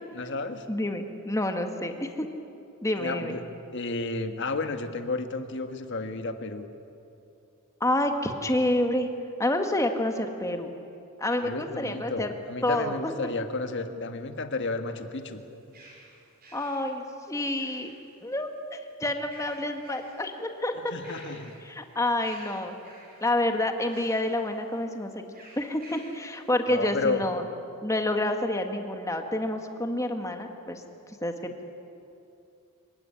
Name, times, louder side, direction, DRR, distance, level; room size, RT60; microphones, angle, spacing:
voice 1, 0.1-0.7 3.0-3.4 3.7-6.7 11.4-15.4 20.7-21.6 26.7-27.3, left 3 dB, 55° left, 7 dB, 1.5 m, -32 dB
voice 2, 0.7-2.3 2.8-3.3 7.8-9.1 9.4-10.7 11.2-12.3 12.6-13.1 16.5-17.9 18.2-20.7 21.6-22.7 23.2-25.1 25.6-27.4 27.8-30.8 31.2-31.7, left 1 dB, 15° left, 5 dB, 1.7 m, -28 dB
sound 1, 15.2-18.2 19.1-20.4 20.8-21.8 22.2-23.3 23.9-24.4 25.3-26.3, right 2 dB, 45° right, 6.9 m, -51 dB
26.0 x 16.0 x 10.0 m, 2.7 s
head